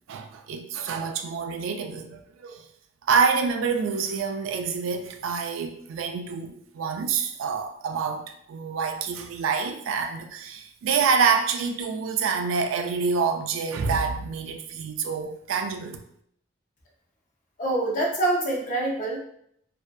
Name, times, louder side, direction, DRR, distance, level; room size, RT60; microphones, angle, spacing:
voice 1, 0.1-2.6 3.1-16.0, right 5 dB, 75° right, 0.3 m, -27 dB
voice 2, 17.6-19.2, right 2 dB, 40° left, 0.5 m, -25 dB
2.6 x 2.1 x 2.2 m
head